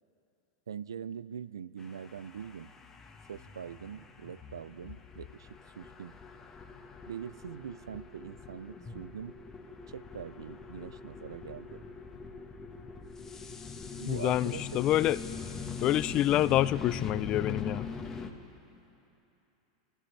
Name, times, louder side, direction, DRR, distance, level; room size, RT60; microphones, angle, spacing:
voice 1, 0.7-2.7 3.3-5.5 5.8-6.2 7.1-9.3 9.9-11.8 14.0-14.8 16.4-16.6, right 8 dB, 85° right, 18 dB, 0.3 m, -43 dB
sound 1, 1.8-18.3, left 5 dB, 20° left, 1.3 m, -43 dB
voice 2, 14.1-15.2 15.8-17.9, left 14 dB, 40° left, 17 dB, 0.4 m, -27 dB
25.5 x 15.0 x 3.3 m, 2.9 s
hypercardioid pair, 95°, 2 cm